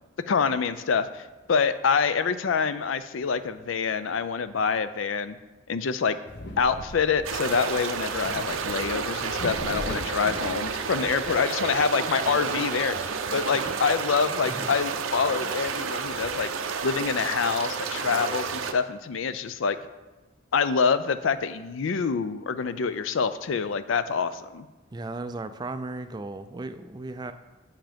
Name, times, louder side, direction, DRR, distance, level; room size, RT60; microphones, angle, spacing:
voice 1, 0.3-5.4 5.7-6.2 6.6-16.5 16.8-19.8 20.5-24.7, left 5 dB, 75° left, 13 dB, 0.5 m, -26 dB
sound 1, 6.2-11.4, left 1 dB, 55° left, 0.9 m, -40 dB
sound 2, 7.2-18.7, right 5 dB, 85° right, 0.6 m, -31 dB
voice 2, 24.9-27.3, right 2 dB, 20° right, 10 dB, 0.3 m, -36 dB
8.6 x 5.7 x 5.1 m, 1.2 s
head